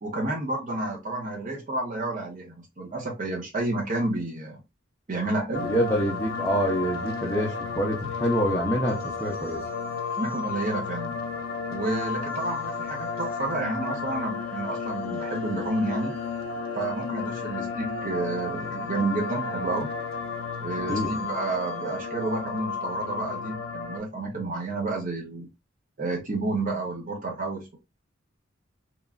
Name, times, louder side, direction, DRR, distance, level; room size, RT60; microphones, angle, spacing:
voice 1, 0.0-4.6 5.1-5.7 10.2-11.2 11.7-16.2 16.7-19.9 20.6-25.5 26.0-27.8, right 2 dB, 45° right, 0.6 m, -30 dB
sound 1, 5.5-24.0, left 5 dB, 50° left, 0.8 m, -33 dB
voice 2, 5.7-9.6 20.9-21.1, equal, 10° left, 0.5 m, -26 dB
3.0 x 2.4 x 2.3 m
head